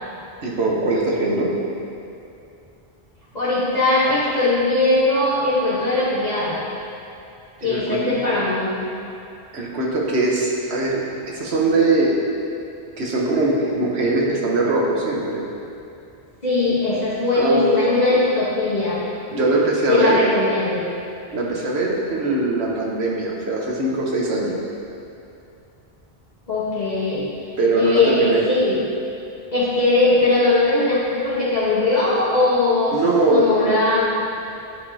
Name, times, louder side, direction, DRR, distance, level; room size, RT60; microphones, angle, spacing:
voice 1, 0.4-1.6 7.6-8.2 9.5-12.2 13.0-15.4 17.3-18.2 19.3-20.2 21.3-24.6 27.6-28.4 32.9-33.5, right 2 dB, 90° right, -2 dB, 1.3 m, -21 dB
voice 2, 3.3-6.6 7.6-8.7 16.4-19.0 19.3-19.4 19.9-20.8 26.5-27.2 27.7-28.8 29.5-34.1, left 2 dB, 45° left, -10 dB, 1.2 m, -20 dB
10.5 x 5.1 x 2.8 m, 2.7 s
omnidirectional pair, 1.1 m